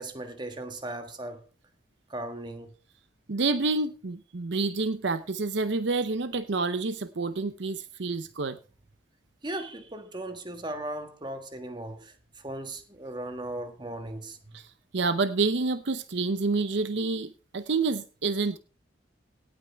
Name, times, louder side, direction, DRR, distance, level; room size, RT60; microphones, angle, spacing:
voice 1, 0.0-1.4 2.1-2.7 9.4-14.6, right 1 dB, 25° right, 1.5 m, -37 dB
voice 2, 3.3-8.6 14.5-18.6, right 3 dB, 65° right, 0.7 m, -28 dB
17.5 x 8.8 x 3.5 m
head